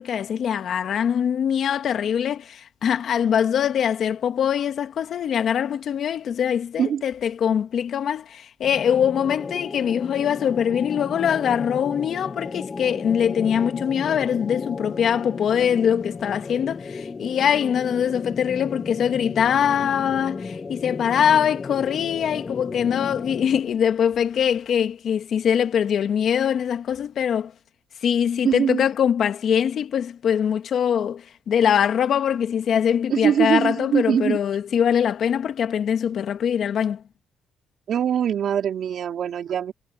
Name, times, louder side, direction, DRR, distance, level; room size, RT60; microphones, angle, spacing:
voice 1, 0.0-27.5 28.0-37.0, left 8 dB, 65° left, 1.9 m, -23 dB
sound 1, 8.6-23.8, left 4 dB, 35° left, 2.1 m, -34 dB
voice 2, 28.4-28.9 33.1-34.4 37.9-39.7, right 9 dB, 65° right, 3.5 m, -22 dB
cardioid pair, 90°, 0 cm